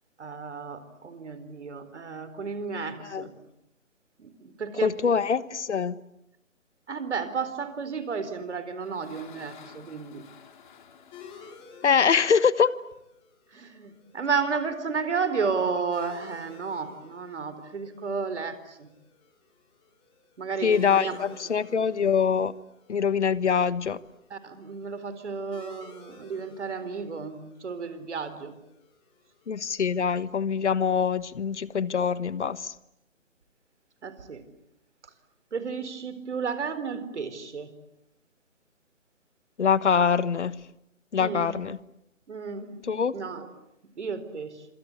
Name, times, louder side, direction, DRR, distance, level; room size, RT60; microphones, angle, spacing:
voice 1, 0.2-3.4 4.2-5.2 6.9-10.2 13.5-18.9 20.4-21.3 21.7-21.8 24.3-28.6 34.0-34.4 35.0-35.1 35.5-37.7 41.2-41.6 42.3-42.8 43.1-43.5 44.0-44.7, right 5 dB, 60° right, 4.2 m, -32 dB
voice 2, 4.8-6.0 11.8-12.8 20.6-22.5 22.9-24.0 29.5-32.7 39.6-40.6 41.1-41.8 42.9-43.2, left 6 dB, 60° left, 1.4 m, -24 dB
sound 1, 8.3-13.0, left 7 dB, 35° left, 3.5 m, -53 dB
sound 2, 11.1-30.3, left 5 dB, 15° left, 3.6 m, -54 dB
27.5 x 26.5 x 8.2 m
figure-of-eight pair, 155°, 40 cm